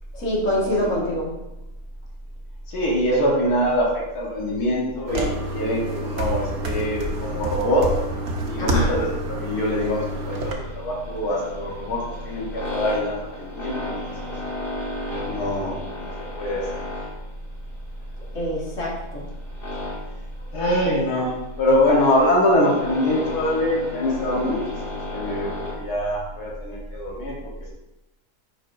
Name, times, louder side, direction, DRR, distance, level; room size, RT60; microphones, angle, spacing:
voice 1, 0.1-1.3 8.6-8.9 18.3-19.3 24.4-24.6, left 1 dB, 55° left, -5 dB, 2.0 m, -25 dB
voice 2, 2.7-7.9 8.4-14.3 15.2-16.7 20.5-24.6 24.9-27.5, left 1 dB, 85° left, -3 dB, 1.7 m, -24 dB
sound 1, 5.1-10.5, right 1 dB, 55° right, 1.1 m, -28 dB
sound 2, 10.1-25.7, left 2 dB, 35° left, 2.6 m, -35 dB
10.5 x 4.0 x 2.5 m, 0.95 s
omnidirectional pair, 1.6 m